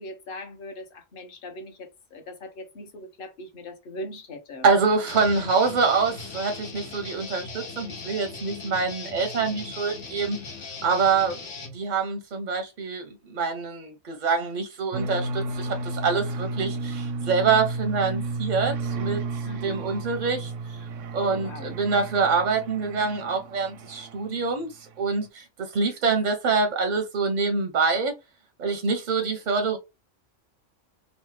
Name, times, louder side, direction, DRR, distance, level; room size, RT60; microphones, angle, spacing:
voice 1, 0.0-4.7 19.4-19.8 21.2-21.8, left 1 dB, 50° left, 0.9 m, -40 dB
voice 2, 4.6-10.4 10.8-11.4 11.7-19.2 19.6-20.5 21.1-28.1 28.6-29.8, right 4 dB, 55° right, 0.5 m, -25 dB
Guitar, 5.1-11.8, left 4 dB, 70° left, 1.1 m, -39 dB
sound 1, 14.9-24.5, right 3 dB, 85° right, 0.9 m, -33 dB
3.0 x 2.1 x 3.1 m
omnidirectional pair, 1.3 m